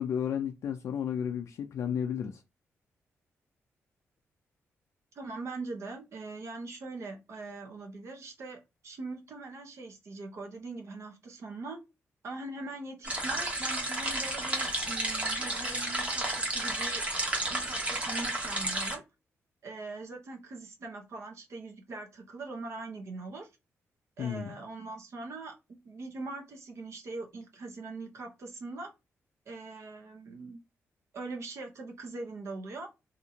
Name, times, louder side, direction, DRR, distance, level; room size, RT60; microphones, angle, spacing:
voice 1, 0.0-2.4 24.2-24.6, left 8 dB, 70° left, 0.4 m, -32 dB
voice 2, 5.1-11.8 12.2-17.0 17.5-19.0 19.6-23.5 24.2-28.9 29.5-30.6 31.1-32.9, right 3 dB, 65° right, 0.9 m, -42 dB
sound 1, 13.0-19.0, right 1 dB, 25° right, 1.2 m, -32 dB
2.8 x 2.5 x 2.7 m
cardioid pair, 110°, 5 cm